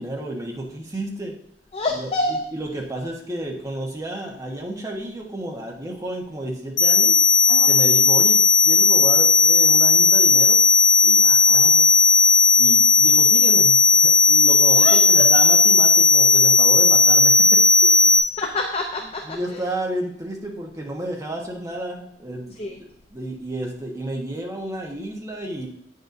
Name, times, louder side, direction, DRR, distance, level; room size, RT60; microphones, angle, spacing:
voice 1, 0.0-1.3 1.9-2.1 2.5-7.2 7.7-10.6 11.0-11.9 12.6-17.6 18.1-18.2 19.3-25.7, right 1 dB, 20° right, -1 dB, 1.1 m, -31 dB
voice 2, 1.7-2.4 7.5-7.7 11.5-11.7 14.7-15.0 17.8-19.6 22.6-22.8, left 2 dB, 35° left, 1 dB, 0.6 m, -28 dB
sound 1, 6.8-18.2, left 5 dB, 70° left, 1.1 m, -15 dB
8.8 x 6.6 x 2.6 m, 0.71 s
head